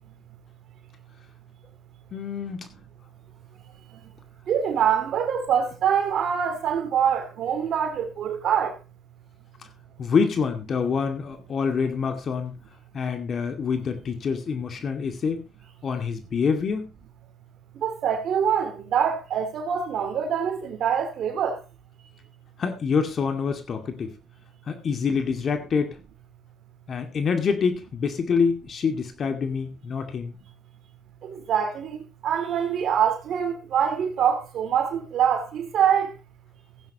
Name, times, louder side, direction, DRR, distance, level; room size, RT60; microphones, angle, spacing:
voice 1, 2.1-2.7 10.0-12.6 12.9-15.5 15.8-16.9 22.6-24.1 24.7-26.0 26.9-30.4, left 5 dB, 45° left, 2.3 m, -26 dB
voice 2, 4.5-8.7 17.8-21.6 31.3-32.0 32.2-36.1, right 8 dB, 60° right, 2.8 m, -24 dB
16.5 x 9.6 x 3.0 m
cardioid pair, 100°, 0 cm